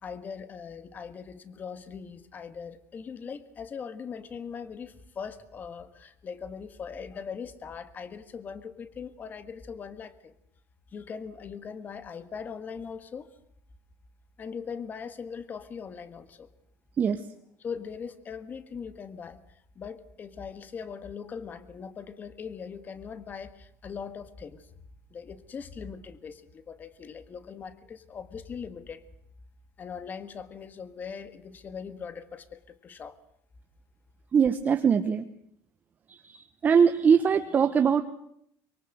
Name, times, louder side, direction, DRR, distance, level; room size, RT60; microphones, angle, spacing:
voice 1, 0.0-10.3 10.9-13.3 14.4-16.5 17.6-24.7 25.1-29.0 29.8-33.2, left 6 dB, 25° left, 13 dB, 1.7 m, -40 dB
voice 2, 17.0-17.3 34.3-35.3 36.1-38.0, right 6 dB, 25° right, 8 dB, 1.0 m, -22 dB
24.0 x 23.5 x 7.9 m, 0.72 s
cardioid pair, 155°, 7 cm